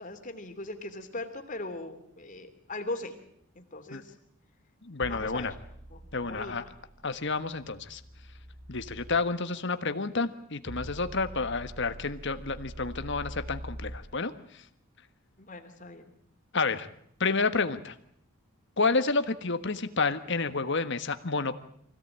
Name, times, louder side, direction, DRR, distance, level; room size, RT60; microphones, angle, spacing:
voice 1, 0.0-3.1 3.5-4.1 5.1-5.6 5.9-6.7 15.4-16.1, left 2 dB, 35° left, 5 dB, 2.8 m, -39 dB
voice 2, 4.9-5.5 6.1-6.6 7.0-8.0 8.7-14.6 16.5-16.9 17.2-17.9 18.8-21.5, left 4 dB, 55° left, 10 dB, 1.5 m, -30 dB
sound 1, 5.0-9.2 10.7-14.0, right 1 dB, 65° right, 5.1 m, -44 dB
25.0 x 17.0 x 8.9 m, 0.70 s
head